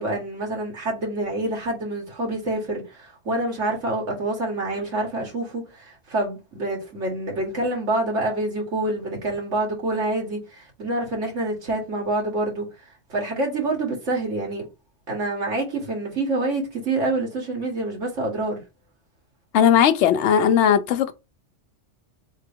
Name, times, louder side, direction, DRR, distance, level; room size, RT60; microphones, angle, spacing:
voice 1, 0.0-12.7 13.1-14.7 15.1-18.6, right 2 dB, 75° right, 2.0 m, -27 dB
voice 2, 19.5-21.1, left 8 dB, 70° left, 0.9 m, -17 dB
3.7 x 3.7 x 3.5 m
omnidirectional pair, 1.3 m